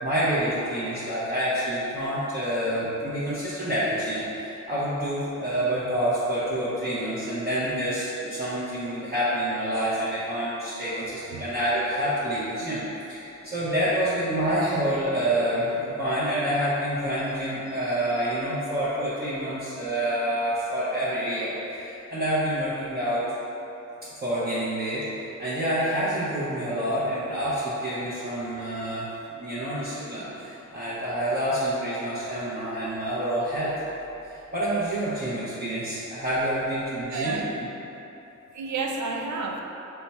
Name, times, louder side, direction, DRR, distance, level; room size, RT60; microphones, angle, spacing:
voice 1, 0.0-23.2 24.2-25.1 25.4-29.0 29.4-33.7 34.2-37.4, right 1 dB, 30° right, -12 dB, 0.8 m, -27 dB
voice 2, 37.1-37.5 38.5-39.6, right 4 dB, 65° right, 1 dB, 0.5 m, -30 dB
4.4 x 2.3 x 4.1 m, 3.0 s
wide cardioid pair, 120°, 31 cm